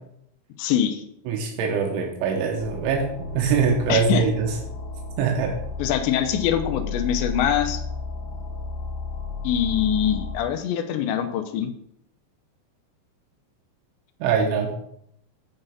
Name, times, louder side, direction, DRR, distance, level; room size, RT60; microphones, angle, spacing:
voice 1, 0.6-1.0 3.9-4.2 5.8-7.8 9.4-11.7, left 9 dB, 85° left, 6 dB, 2.9 m, -23 dB
voice 2, 1.3-4.5 5.2-5.5 14.2-14.7, right 6 dB, 90° right, 1 dB, 3.5 m, -23 dB
sound 1, 2.6-10.4, left 3 dB, 60° left, 3.0 m, -33 dB
9.0 x 5.6 x 5.2 m, 0.73 s
omnidirectional pair, 5.3 m